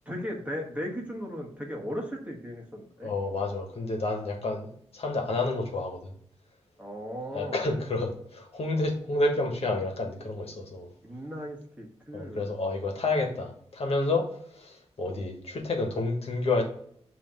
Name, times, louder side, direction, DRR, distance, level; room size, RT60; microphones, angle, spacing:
voice 1, 0.1-3.1 6.8-7.8 11.0-12.5, equal, 15° right, 0 dB, 1.3 m, -37 dB
voice 2, 3.0-6.1 7.3-10.9 12.1-14.3 14.5-16.6, left 2 dB, 60° left, 2 dB, 1.4 m, -29 dB
7.9 x 2.9 x 5.4 m, 0.63 s
wide cardioid pair, 155°, 11 cm